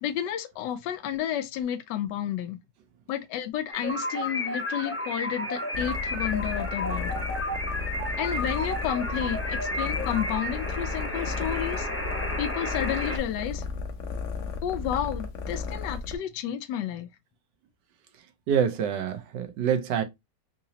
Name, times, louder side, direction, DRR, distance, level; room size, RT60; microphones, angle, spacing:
voice 1, 0.0-2.6 3.1-7.2 8.2-11.9 12.4-13.6 14.6-17.1, left 10 dB, 90° left, 1.2 m, -31 dB
sound 1, 3.7-13.2, left 1 dB, 10° left, 0.7 m, -32 dB
sound 2, 5.7-16.2, left 5 dB, 60° left, 0.9 m, -34 dB
voice 2, 18.5-20.0, right 8 dB, 90° right, 1.4 m, -26 dB
3.9 x 2.9 x 2.7 m
omnidirectional pair, 1.8 m